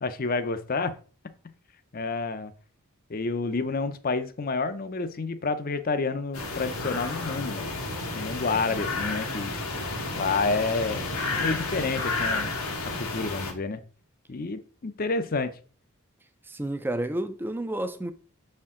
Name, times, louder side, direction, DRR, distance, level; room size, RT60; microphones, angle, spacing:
voice 1, 0.0-0.9 1.9-2.5 3.1-7.7 8.1-9.5 10.1-11.1 11.3-12.6 13.0-13.8 14.3-15.6, left 3 dB, 40° left, 0.6 m, -29 dB
sound 1, 6.3-13.5, left 3 dB, 85° left, 1.3 m, -31 dB
voice 2, 16.4-18.1, right 1 dB, 10° right, 0.4 m, -30 dB
6.5 x 4.4 x 3.7 m
head